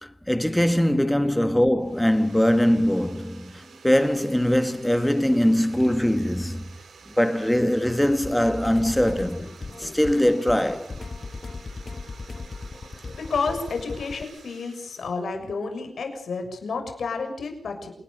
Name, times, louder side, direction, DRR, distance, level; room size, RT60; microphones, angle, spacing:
voice 1, 0.0-6.8 7.2-9.5 9.8-10.9, equal, 5° left, 1.5 m, -22 dB
sound 1, 1.8-15.2, right 5 dB, 85° right, 4.2 m, -50 dB
sound 2, 8.1-14.2, left 3 dB, 40° left, 1.3 m, -37 dB
voice 2, 12.9-17.9, left 4 dB, 75° left, 6.9 m, -30 dB
28.0 x 19.0 x 6.7 m
wide cardioid pair, 110°, 0 cm